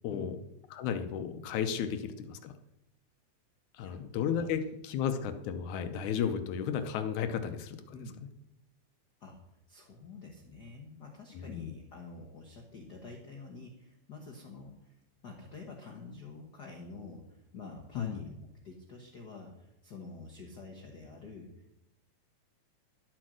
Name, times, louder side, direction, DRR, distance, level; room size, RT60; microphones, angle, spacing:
voice 1, 0.0-0.4 0.7-2.5 3.8-7.8 11.4-11.7 18.0-18.2, left 8 dB, 80° left, 8 dB, 2.2 m, -33 dB
voice 2, 7.9-8.3 9.2-9.4 9.7-21.8, left 3 dB, 50° left, 2 dB, 1.3 m, -48 dB
11.5 x 8.6 x 6.3 m, 0.87 s
omnidirectional pair, 3.4 m